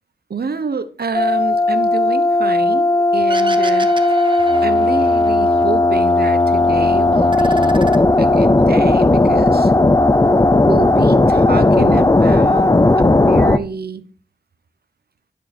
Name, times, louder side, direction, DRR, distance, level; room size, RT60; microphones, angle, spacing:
voice 1, 0.3-4.2 4.6-7.8 8.2-9.7 10.6-12.7 13.0-14.0, right 5 dB, 80° right, 12 dB, 1.0 m, -27 dB
sound 1, 1.1-13.6, left 2 dB, 20° left, 0.6 m, -14 dB
sound 2, 3.3-5.6 6.0-6.8 7.1-8.6, right 3 dB, 30° right, 1.3 m, -31 dB
11.0 x 7.5 x 4.3 m, 0.43 s
wide cardioid pair, 50°, 16 cm